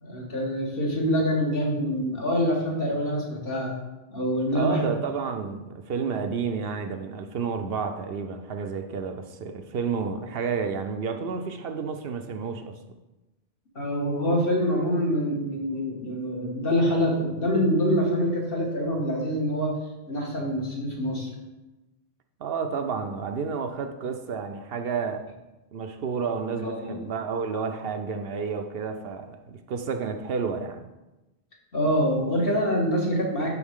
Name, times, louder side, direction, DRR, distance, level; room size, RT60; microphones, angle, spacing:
voice 1, 0.0-3.7 4.1-4.9 13.8-19.7 20.1-21.3 26.6-26.9 31.7-33.5, equal, 60° left, -2 dB, 1.8 m, -25 dB
voice 2, 4.5-12.7 22.4-25.2 25.7-30.9, right 5 dB, 65° right, 6 dB, 0.7 m, -30 dB
11.5 x 4.0 x 3.6 m, 1.0 s
omnidirectional pair, 1.1 m